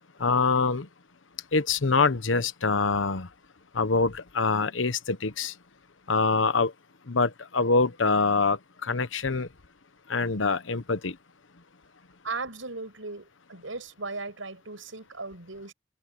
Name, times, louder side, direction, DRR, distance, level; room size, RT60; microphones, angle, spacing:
voice 1, 0.2-0.9 1.5-3.3 3.7-5.5 6.1-6.7 7.1-9.5 10.1-11.2, left 4 dB, 80° left, 1.1 m, -25 dB
voice 2, 12.2-15.7, right 3 dB, 90° right, 7.2 m, -37 dB
open air
head